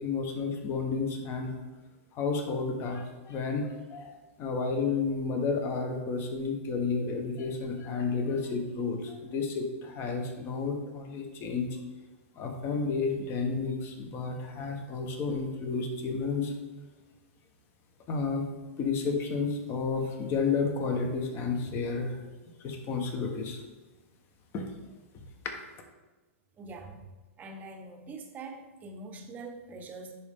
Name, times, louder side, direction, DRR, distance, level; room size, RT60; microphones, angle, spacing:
voice 1, 0.0-1.6 2.1-11.7 12.4-16.5 18.1-18.4 18.8-22.2 22.6-23.6 24.5-24.6, left 4 dB, 30° left, 4 dB, 1.2 m, -31 dB
voice 2, 26.6-26.9 27.4-30.1, right 3 dB, 20° right, 4 dB, 0.9 m, -43 dB
10.5 x 4.2 x 3.7 m, 1.2 s
hypercardioid pair, 130°, 8 cm